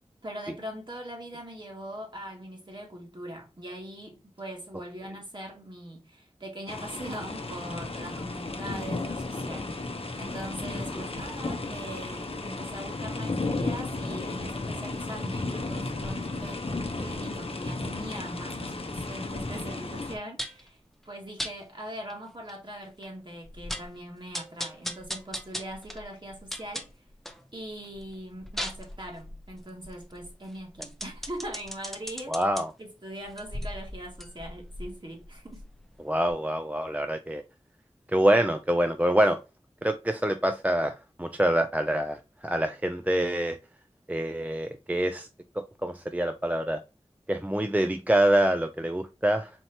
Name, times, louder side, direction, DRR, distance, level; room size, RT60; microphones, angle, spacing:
voice 1, 0.2-16.6 17.0-20.8 21.0-26.9 27.5-32.5 32.8-35.6, right 1 dB, 40° right, 1.9 m, -41 dB
sound 1, 6.7-20.2, left 2 dB, 55° left, 0.7 m, -34 dB
sound 2, 20.4-20.7 21.4-21.5 22.1-22.2 22.5-22.6 23.0-23.1 23.4-24.0 24.3-27.4 27.8-32.6 33.2-35.9 36.3-36.4, equal, ahead, 0.8 m, -38 dB
voice 2, 32.3-32.7 36.0-37.4 38.1-39.4 39.8-40.9 41.2-43.6 44.1-45.3 45.8-46.8 47.3-49.5, right 1 dB, 15° right, 0.4 m, -25 dB
4.4 x 2.8 x 2.7 m
wide cardioid pair, 45°, 12 cm